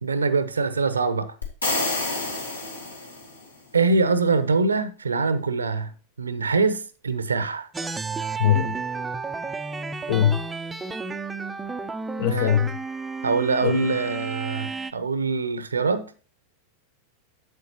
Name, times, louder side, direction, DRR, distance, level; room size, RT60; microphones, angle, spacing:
voice 1, 0.0-1.3 3.7-5.9 6.2-7.7 12.3-12.6 13.2-16.1, right 4 dB, 75° right, 0.7 m, -24 dB
sound 1, 1.4-3.5, left 2 dB, 80° left, 2.2 m, -28 dB
sound 2, 7.7-14.9, right 4 dB, 10° right, 0.5 m, -32 dB
voice 2, 8.4-8.8 10.1-10.4 12.2-12.8 13.6-13.8, left 10 dB, 55° left, 0.7 m, -21 dB
8.2 x 8.2 x 2.9 m
figure-of-eight pair, 90°, 0 cm